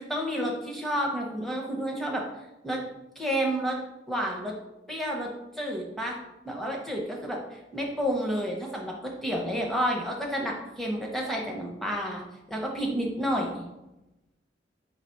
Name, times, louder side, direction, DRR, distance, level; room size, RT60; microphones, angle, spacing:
voice 1, 0.0-2.2 2.6-2.8 3.2-3.8 4.1-4.5 4.9-5.3 5.6-6.2 6.4-12.2 12.5-13.7, equal, ahead, -1 dB, 0.7 m, -30 dB
4.0 x 2.9 x 4.5 m, 0.95 s
head